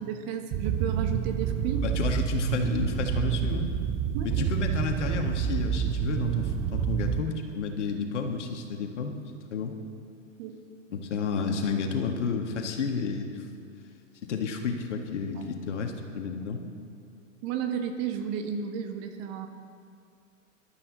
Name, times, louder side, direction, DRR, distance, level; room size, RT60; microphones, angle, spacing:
voice 1, 0.0-1.8 4.1-4.3 10.4-10.6 15.3-15.5 17.4-19.5, right 7 dB, 35° right, 5 dB, 1.4 m, -33 dB
sound 1, 0.5-7.2, right 8 dB, 20° right, 0.4 m, -28 dB
voice 2, 1.8-3.7 4.2-9.1 9.5-9.7 10.9-13.4 14.3-16.6, left 5 dB, 60° left, 4 dB, 1.9 m, -31 dB
22.0 x 12.0 x 4.1 m, 2.4 s
figure-of-eight pair, 105°, 39 cm